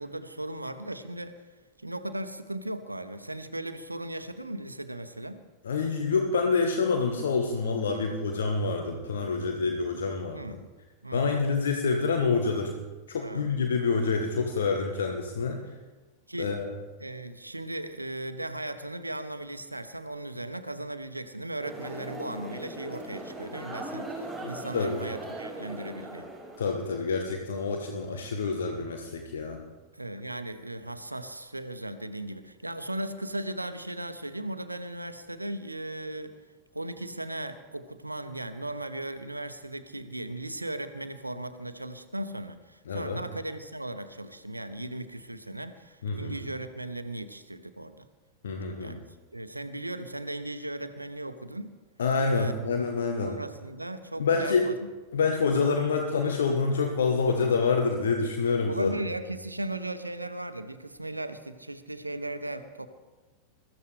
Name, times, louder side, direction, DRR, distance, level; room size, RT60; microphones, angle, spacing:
voice 1, 0.0-1.3 1.8-5.4 7.9-8.1 10.3-10.7 11.0-11.4 13.2-13.5 16.3-16.5 17.0-26.3 29.9-36.3 36.7-48.1 48.8-49.0 49.3-51.7 52.3-52.5 53.2-54.8 58.7-62.9, right 1 dB, 85° right, 11 dB, 0.9 m, -37 dB
voice 2, 5.6-10.4 11.1-12.7 13.1-15.6 16.4-16.7 24.7-25.0 26.6-29.6 42.9-43.2 46.0-46.4 48.4-49.0 52.0-53.4 54.2-54.7 55.1-58.9, left 4 dB, 65° left, 3 dB, 1.3 m, -27 dB
sound 1, 21.6-27.0, right 1 dB, 5° right, 5.3 m, -39 dB
21.5 x 14.0 x 3.4 m, 1.2 s
figure-of-eight pair, 90°, 0 cm